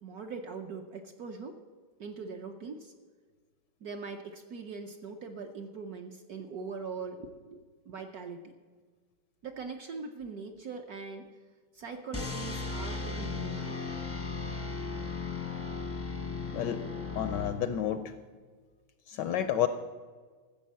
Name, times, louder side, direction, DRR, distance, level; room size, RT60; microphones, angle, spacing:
voice 1, 0.0-1.6 2.0-2.9 3.8-8.5 9.4-11.3 11.7-13.8, right 4 dB, 65° right, 4 dB, 1.0 m, -41 dB
sound 1, 12.1-18.0, left 4 dB, 15° left, 0.5 m, -36 dB
voice 2, 16.5-16.8 17.1-18.1 19.1-19.7, left 10 dB, 75° left, 10 dB, 1.0 m, -30 dB
14.0 x 7.3 x 7.3 m, 1.5 s
omnidirectional pair, 2.3 m